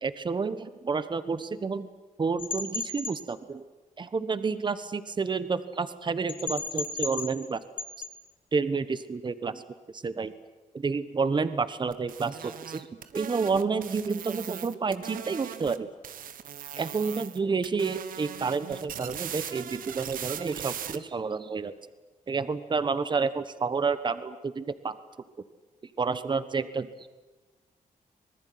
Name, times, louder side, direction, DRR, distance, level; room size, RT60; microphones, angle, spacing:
voice 1, 0.0-1.9 2.2-3.6 4.0-7.6 8.5-9.6 9.9-10.3 10.7-12.9 13.1-15.9 16.8-21.7 22.3-25.0 26.0-27.1, right 4 dB, 35° right, 13 dB, 1.3 m, -30 dB
sound 1, 2.4-3.2 6.3-7.5 7.8-8.1, left 5 dB, 65° left, 3.8 m, -34 dB
sound 2, 11.9-15.8 16.0-17.4 17.6-21.0, right 9 dB, 90° right, 1.4 m, -39 dB
26.0 x 20.0 x 9.5 m, 1.2 s
cardioid pair, 115°, 14 cm